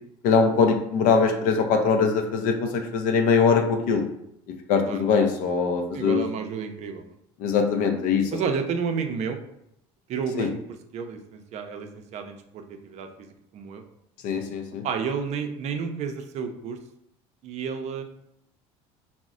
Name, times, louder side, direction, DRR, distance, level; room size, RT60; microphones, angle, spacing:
voice 1, 0.2-4.1 4.7-6.2 7.4-8.3 10.4-10.5 14.2-14.8, left 5 dB, 65° left, 4 dB, 0.4 m, -22 dB
voice 2, 5.9-7.2 8.3-9.4 10.1-10.6 10.9-13.8 14.8-16.8 17.4-18.0, right 6 dB, 50° right, 6 dB, 0.5 m, -31 dB
3.9 x 2.0 x 2.4 m, 0.75 s
supercardioid pair, 90°, 15 cm